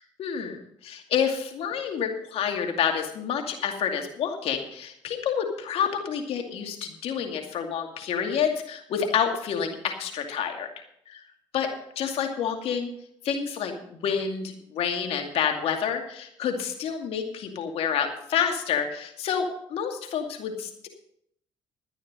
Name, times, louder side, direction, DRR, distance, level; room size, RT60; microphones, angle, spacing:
voice 1, 0.2-10.7 11.1-11.2 11.5-11.7 12.0-12.9 13.2-20.9, left 7 dB, 70° left, 4 dB, 2.4 m, -28 dB
13.5 x 9.6 x 5.4 m, 0.70 s
supercardioid pair, 60°, 11 cm